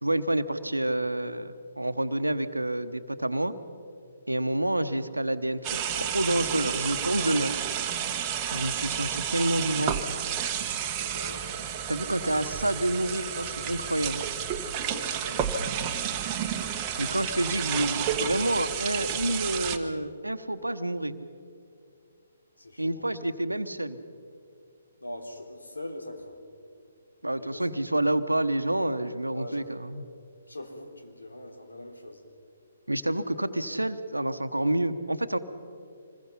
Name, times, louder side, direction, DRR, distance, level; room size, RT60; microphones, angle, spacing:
voice 1, 0.0-3.5 4.3-7.6 8.5-10.0 11.9-14.2 17.0-21.1 22.8-24.0 27.2-30.1 32.9-35.4, right 1 dB, 85° right, 10 dB, 1.1 m, -28 dB
sound 1, 5.6-19.8, right 8 dB, 25° right, 1.2 m, -31 dB
voice 2, 11.0-11.6 12.2-12.5 14.6-15.6 17.0-17.2 22.6-23.0 25.0-26.4 27.3-27.7 29.3-29.7 30.5-32.2, left 1 dB, 80° left, 3 dB, 3.1 m, -42 dB
26.0 x 21.0 x 5.7 m, 2.4 s
figure-of-eight pair, 135°, 0 cm